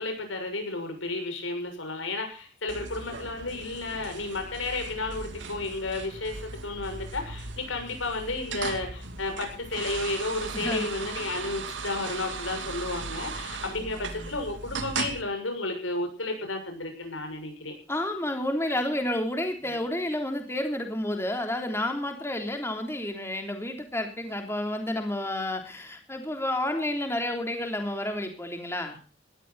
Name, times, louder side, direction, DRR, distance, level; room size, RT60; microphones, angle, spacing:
voice 1, 0.0-17.7, left 2 dB, 85° left, 5 dB, 6.6 m, -32 dB
sound 1, 2.7-15.2, right 4 dB, 70° right, 2.6 m, -38 dB
voice 2, 10.5-10.8 13.7-14.3 17.9-29.0, left 1 dB, 15° left, 4 dB, 3.4 m, -30 dB
19.0 x 13.5 x 4.2 m, 0.36 s
head